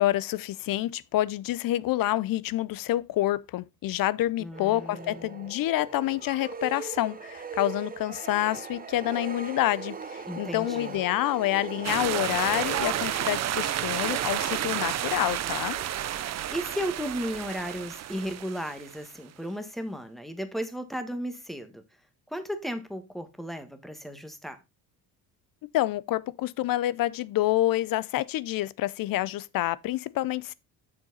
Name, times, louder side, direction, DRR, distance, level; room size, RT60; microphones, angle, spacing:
voice 1, 0.0-15.8 25.7-30.5, left 15 dB, 55° left, 0.5 m, -28 dB
voice 2, 4.4-5.4 10.2-11.0 16.5-21.8 22.3-24.6, equal, ahead, 1.3 m, -35 dB
sound 1, 4.5-13.6, right 5 dB, 20° right, 0.9 m, -40 dB
sound 2, 11.8-19.1, right 11 dB, 40° right, 0.6 m, -31 dB
7.1 x 6.6 x 3.9 m
cardioid pair, 110°, 40 cm